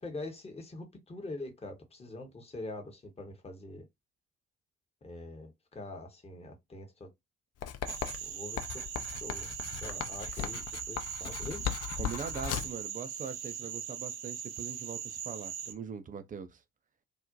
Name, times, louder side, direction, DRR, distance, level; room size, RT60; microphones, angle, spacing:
voice 1, 0.0-3.9 5.0-7.1 8.2-8.9 9.2-9.5 9.8-11.6, left 2 dB, 15° left, 0.8 m, -44 dB
Writing, 7.6-12.8, left 9 dB, 40° left, 0.5 m, -38 dB
sound 1, 7.9-15.7, right 8 dB, 75° right, 0.6 m, -40 dB
voice 2, 12.0-16.6, right 6 dB, 20° right, 0.3 m, -41 dB
2.4 x 2.1 x 2.5 m
figure-of-eight pair, 40°, 40 cm